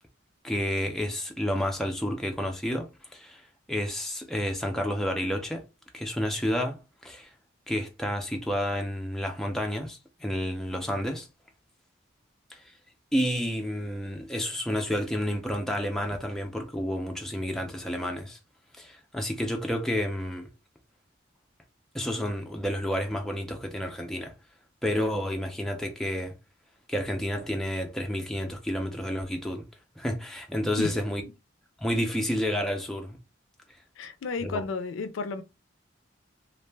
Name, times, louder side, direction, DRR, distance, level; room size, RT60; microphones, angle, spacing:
voice 1, 0.4-3.4 3.7-5.6 5.9-7.3 7.7-11.3 12.5-12.6 13.1-18.4 18.8-20.5 21.9-24.3 24.8-26.3 26.9-29.6 30.0-31.2 31.8-33.2 34.4-34.6, equal, ahead, 0.4 m, -30 dB
voice 2, 34.0-35.4, left 4 dB, 75° left, 0.4 m, -32 dB
2.6 x 2.0 x 3.2 m
head